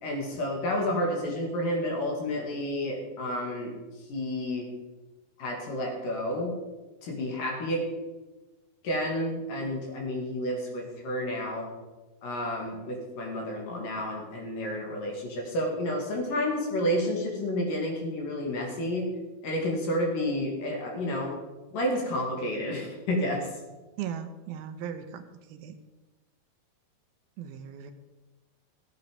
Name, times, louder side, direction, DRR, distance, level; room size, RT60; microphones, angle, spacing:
voice 1, 0.0-3.7 4.1-4.7 5.4-6.5 7.0-7.8 8.8-11.7 12.2-19.1 19.4-21.4 21.7-23.5, left 1 dB, 60° left, 0 dB, 3.7 m, -30 dB
voice 2, 24.0-25.2 25.5-25.8 27.4-27.9, right 8 dB, 80° right, 8 dB, 2.6 m, -37 dB
15.0 x 8.3 x 5.2 m, 1.2 s
omnidirectional pair, 4.5 m